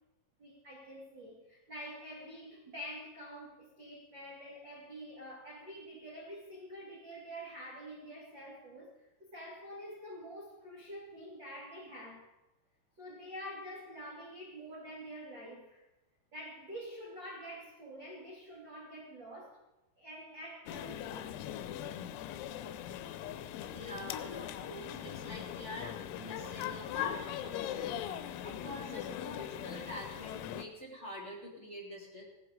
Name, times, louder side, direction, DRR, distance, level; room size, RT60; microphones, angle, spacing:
voice 1, 0.4-12.2 13.0-15.8 16.3-19.6 20.0-21.3, equal, 50° right, -3 dB, 1.3 m, -47 dB
sound 1, 20.7-30.7, left 11 dB, 90° left, 3.5 m, -40 dB
voice 2, 23.7-32.2, left 1 dB, 20° right, -4 dB, 1.8 m, -46 dB
16.5 x 12.5 x 5.0 m, 1.0 s
omnidirectional pair, 5.9 m